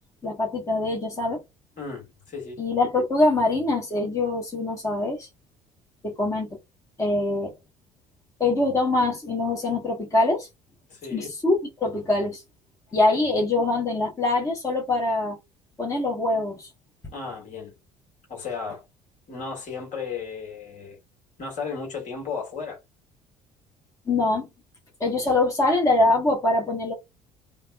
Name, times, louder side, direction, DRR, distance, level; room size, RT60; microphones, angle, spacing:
voice 1, 0.2-1.4 2.6-5.3 6.0-6.6 7.0-7.5 8.4-10.5 11.1-11.5 11.8-12.4 12.9-15.4 15.8-16.7 24.1-24.5 25.0-26.9, left 2 dB, 15° left, 1.1 m, -23 dB
voice 2, 1.8-2.6 10.9-11.3 12.9-13.0 17.1-17.7 18.3-18.9 19.3-21.0 21.4-22.8, left 5 dB, 40° left, 1.7 m, -34 dB
3.3 x 2.1 x 2.2 m
figure-of-eight pair, 55°, 19 cm